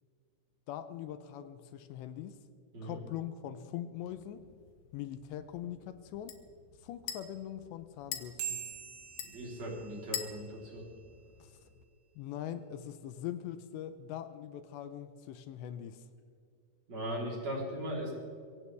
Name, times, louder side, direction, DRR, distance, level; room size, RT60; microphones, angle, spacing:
voice 1, 0.7-2.4 2.8-4.4 4.9-6.4 6.8-8.6 11.4-11.5 12.2-16.0, left 11 dB, 85° left, 11 dB, 2.9 m, -42 dB
sound 1, 4.0-11.9, left 9 dB, 70° left, 2.3 m, -47 dB
sound 2, 8.4-11.2, right 7 dB, 80° right, 4.4 m, -44 dB
voice 2, 9.3-10.8 16.9-18.1, equal, 40° right, -3 dB, 4.7 m, -38 dB
23.5 x 16.5 x 3.5 m, 2.3 s
omnidirectional pair, 5.2 m